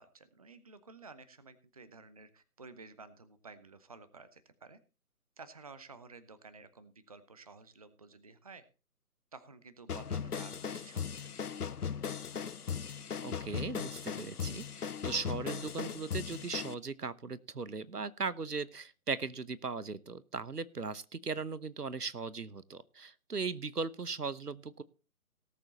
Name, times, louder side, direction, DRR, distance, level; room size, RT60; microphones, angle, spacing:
voice 1, 0.0-4.8 5.4-8.6 9.3-11.6, right 4 dB, 25° right, 14 dB, 0.7 m, -53 dB
sound 1, 9.9-16.7, left 7 dB, 80° left, 0.7 m, -38 dB
voice 2, 13.2-24.8, right 4 dB, 90° right, 18 dB, 1.0 m, -38 dB
18.0 x 7.3 x 4.1 m, 0.33 s
figure-of-eight pair, 145°, 45 cm